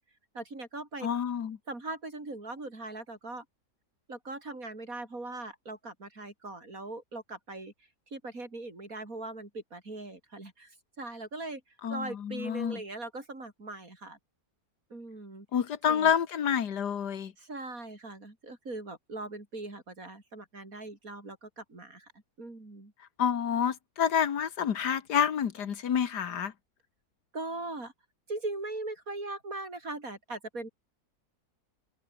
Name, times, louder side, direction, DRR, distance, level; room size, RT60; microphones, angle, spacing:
voice 1, 0.3-1.1 1.7-3.5 4.1-7.7 8.1-14.2 14.9-15.5 15.9-16.1 17.4-22.1 22.4-22.9 27.3-27.9 28.3-30.7, right 2 dB, 55° right, 5.6 m, -40 dB
voice 2, 1.0-1.6 11.8-12.8 15.5-17.3 23.2-26.5, left 8 dB, 85° left, 2.0 m, -28 dB
omnidirectional pair, 1.7 m